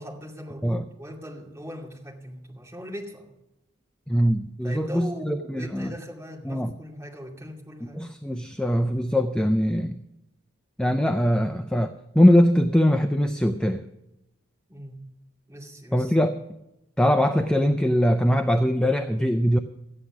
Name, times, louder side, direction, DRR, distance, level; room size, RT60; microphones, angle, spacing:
voice 1, 0.0-3.3 4.6-8.0 14.7-15.0 15.5-16.1, equal, 15° right, -3 dB, 2.5 m, -39 dB
voice 2, 4.1-5.9 6.4-6.7 7.9-10.0 10.8-13.8 15.9-16.4 17.0-19.6, equal, 5° left, 7 dB, 0.4 m, -22 dB
13.0 x 9.9 x 6.0 m, 0.90 s
head